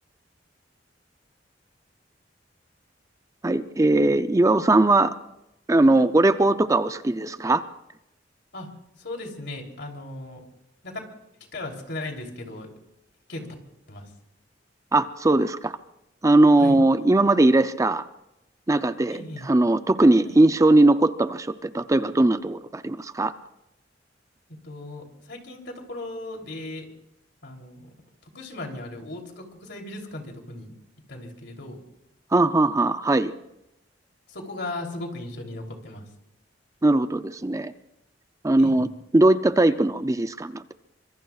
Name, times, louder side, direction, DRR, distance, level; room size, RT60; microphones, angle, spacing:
voice 1, 3.4-5.1 5.7-7.6 14.9-15.7 16.2-18.1 18.7-23.3 32.3-33.3 36.8-37.7 38.4-38.9 39.1-40.7, right 2 dB, 15° right, 11 dB, 0.5 m, -20 dB
voice 2, 9.0-10.4 10.8-11.0 11.5-12.7 13.3-13.5 13.9-14.1 16.6-16.8 19.1-19.5 20.2-20.3 24.6-26.9 27.4-27.9 28.2-30.7 31.1-31.8 34.3-36.0 38.6-38.9, left 2 dB, 65° left, 2 dB, 3.2 m, -37 dB
25.0 x 23.0 x 2.4 m, 0.88 s
head